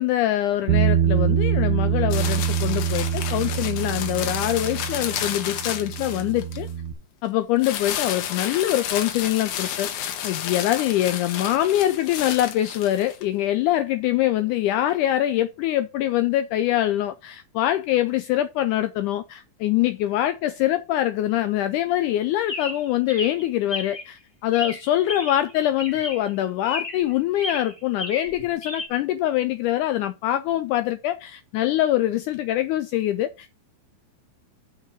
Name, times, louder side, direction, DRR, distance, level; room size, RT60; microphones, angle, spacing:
voice 1, 0.0-6.7 7.2-33.6, left 13 dB, 85° left, 1.7 m, -24 dB
Bass guitar, 0.7-6.9, right 9 dB, 60° right, 1.6 m, -24 dB
sound 1, 2.1-6.7 7.6-13.2, left 9 dB, 70° left, 2.3 m, -31 dB
Chirp tweet, 22.5-24.1 24.5-25.5 25.8-26.3 26.6-27.1 27.4-28.9, left 2 dB, 25° left, 0.7 m, -33 dB
7.5 x 4.6 x 6.2 m
omnidirectional pair, 4.2 m